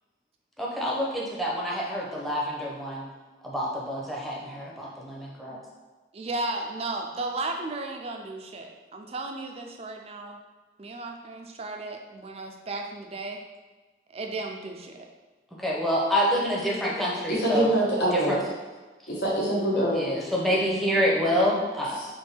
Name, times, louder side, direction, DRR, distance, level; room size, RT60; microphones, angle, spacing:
voice 1, 0.6-3.1 3.4-5.6 15.6-17.7 18.1-18.4 19.9-22.0, equal, ahead, -4 dB, 0.8 m, -27 dB
voice 2, 6.1-10.4 10.8-13.4 14.1-15.1, right 2 dB, 35° right, 3 dB, 0.4 m, -34 dB
voice 3, 17.3-18.3 19.1-20.0 22.0-22.1, right 1 dB, 65° left, -6 dB, 1.2 m, -24 dB
3.5 x 3.1 x 4.3 m, 1.3 s
head